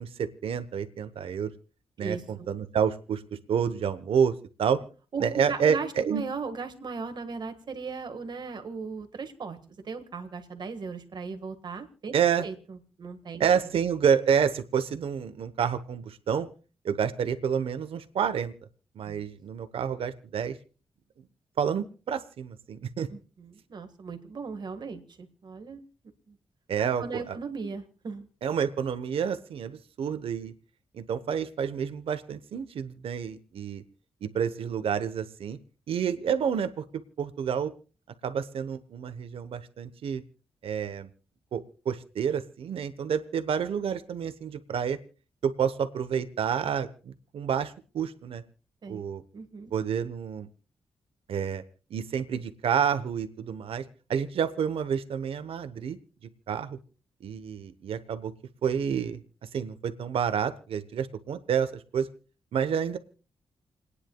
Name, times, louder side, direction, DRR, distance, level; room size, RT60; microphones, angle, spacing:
voice 1, 0.0-1.5 2.0-3.2 3.5-4.3 4.6-4.8 5.2-6.2 12.1-12.5 13.4-16.5 16.8-18.5 19.0-20.6 21.6-23.1 26.7-27.4 28.4-30.5 30.9-33.8 34.2-35.6 35.9-36.8 37.2-37.7 38.2-40.2 40.6-41.1 41.5-45.0 45.4-48.4 48.9-49.2 49.7-50.5 51.3-51.6 51.9-53.8 54.1-56.0 56.5-56.8 57.2-58.3 58.6-59.2 59.5-62.1 62.5-63.0, right 7 dB, 80° right, 10 dB, 1.0 m, -29 dB
voice 2, 2.0-2.5 5.1-13.7 19.1-19.2 23.1-25.8 26.3-26.4 26.8-28.3 48.8-49.0 49.3-49.7, right 5 dB, 50° right, 7 dB, 1.6 m, -38 dB
29.5 x 9.9 x 2.3 m, 0.37 s
wide cardioid pair, 130°, 10 cm